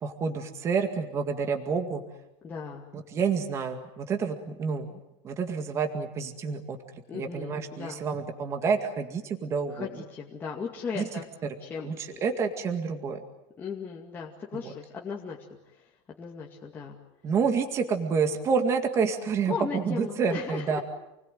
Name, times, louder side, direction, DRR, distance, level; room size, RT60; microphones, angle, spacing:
voice 1, 0.0-2.0 2.9-5.0 5.2-6.8 7.1-9.9 11.0-11.1 11.8-12.0 12.2-13.2 14.5-14.7 17.2-20.8, right 5 dB, 20° right, 5 dB, 2.0 m, -28 dB
voice 2, 2.4-2.9 7.1-8.0 9.7-11.3 11.6-12.3 13.6-15.4 15.7-15.9 16.2-17.0 19.5-20.8, left 5 dB, 15° left, -3 dB, 2.3 m, -37 dB
29.0 x 20.5 x 9.2 m, 0.92 s
supercardioid pair, 175°, 14 cm